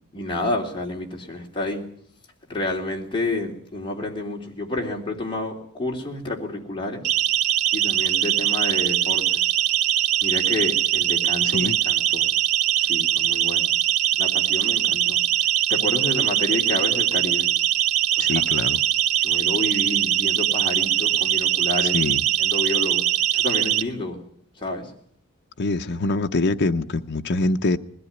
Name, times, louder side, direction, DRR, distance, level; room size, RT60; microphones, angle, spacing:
voice 1, 0.1-1.8 2.5-7.0 7.7-9.5 10.2-12.3 12.8-13.7 14.2-15.2 15.7-17.5 18.2-18.4 19.2-22.0 22.4-23.0 23.3-24.2 24.6-24.9, left 2 dB, 25° left, 3.2 m, -29 dB
Siren, 7.0-23.8, right 11 dB, 90° right, 1.0 m, -22 dB
voice 2, 18.2-18.8 21.9-22.2 25.6-27.8, left 2 dB, 50° left, 0.8 m, -24 dB
20.5 x 14.0 x 9.5 m
head